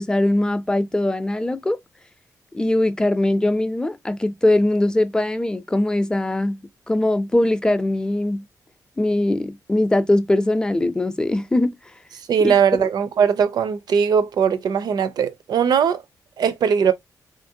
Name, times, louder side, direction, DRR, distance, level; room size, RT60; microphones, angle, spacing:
voice 1, 0.0-1.8 2.5-6.6 6.9-8.4 9.0-11.8 12.4-12.9, left 1 dB, 10° left, 0.5 m, -21 dB
voice 2, 12.3-16.0 16.4-16.9, right 7 dB, 80° right, 0.5 m, -19 dB
3.1 x 2.5 x 2.7 m
cardioid pair, 90°, 7 cm